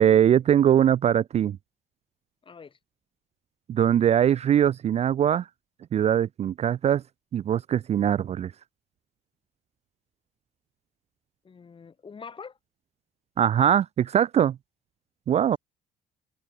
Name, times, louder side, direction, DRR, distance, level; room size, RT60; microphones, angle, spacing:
voice 1, 0.0-1.6 3.7-5.5 5.9-7.0 7.3-8.5 13.4-14.6 15.3-15.6, right 9 dB, 40° right, 0.4 m, -21 dB
voice 2, 2.4-2.8 11.4-12.6, left 5 dB, 30° left, 3.2 m, -44 dB
cardioid pair, 110°, 17 cm